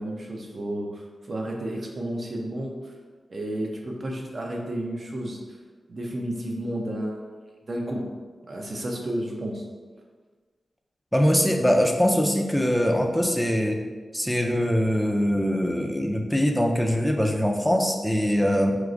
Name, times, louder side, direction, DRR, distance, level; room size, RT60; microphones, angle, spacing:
voice 1, 0.0-2.7 3.3-5.4 5.9-7.3 7.7-8.0 8.5-9.6, right 1 dB, 45° right, 0 dB, 0.7 m, -31 dB
voice 2, 11.1-13.8 14.1-18.7, equal, ahead, 2 dB, 0.5 m, -22 dB
4.6 x 2.5 x 3.9 m, 1.4 s
wide cardioid pair, 105°, 0 cm